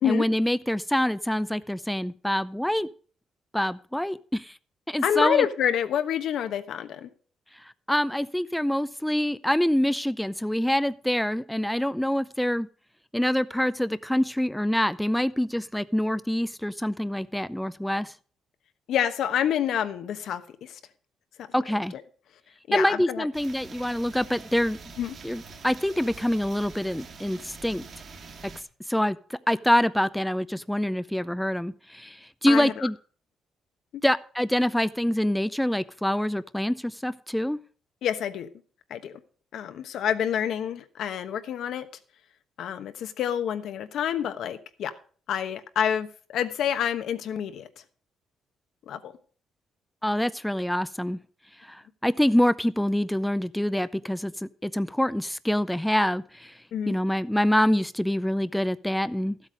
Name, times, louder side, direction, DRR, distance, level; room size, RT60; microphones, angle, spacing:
voice 1, 0.0-2.9 3.5-4.6 4.9-5.5 7.6-12.7 13.1-18.1 21.5-21.9 22.7-24.8 25.2-27.8 28.9-32.9 34.0-37.6 50.0-51.2 51.6-56.6 56.9-59.4, left 1 dB, 5° left, 0.4 m, -26 dB
voice 2, 5.0-7.1 18.9-20.8 21.9-22.0 22.7-23.3 25.0-25.2 32.5-32.9 33.9-34.0 38.0-38.5 38.9-39.2 39.5-41.9 42.6-44.9 45.3-47.7 48.9-49.1 56.7-56.9, left 9 dB, 75° left, 1.1 m, -28 dB
sound 1, 23.3-28.6, right 4 dB, 50° right, 2.3 m, -45 dB
12.5 x 8.2 x 5.2 m
cardioid pair, 90°, 0 cm